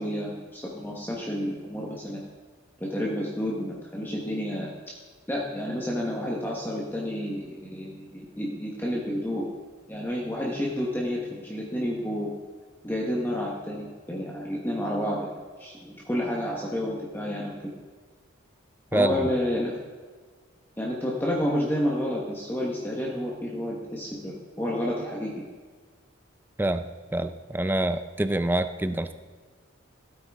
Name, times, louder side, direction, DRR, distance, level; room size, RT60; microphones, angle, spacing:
voice 1, 0.0-2.2 2.8-4.9 5.3-9.5 9.9-12.3 12.8-17.5 18.9-19.8 20.8-25.4, equal, 10° left, -4 dB, 1.1 m, -30 dB
voice 2, 27.1-29.1, right 1 dB, 10° right, 10 dB, 0.4 m, -26 dB
15.5 x 8.8 x 3.5 m, 1.5 s
head